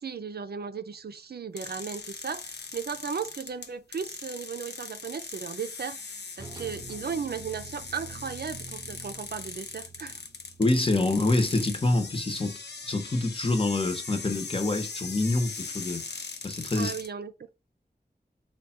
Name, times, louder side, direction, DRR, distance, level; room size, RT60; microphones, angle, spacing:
voice 1, 0.0-6.0 6.4-10.2 16.7-17.3, right 6 dB, 70° right, 0.5 m, -36 dB
sound 1, 1.6-17.1, left 4 dB, 85° left, 0.6 m, -40 dB
sound 2, 6.4-12.1, right 4 dB, 25° right, 0.6 m, -47 dB
voice 2, 10.6-12.6 12.8-16.2 16.4-16.9, left 2 dB, 35° left, 0.9 m, -26 dB
3.3 x 2.3 x 4.3 m
wide cardioid pair, 60°, 17 cm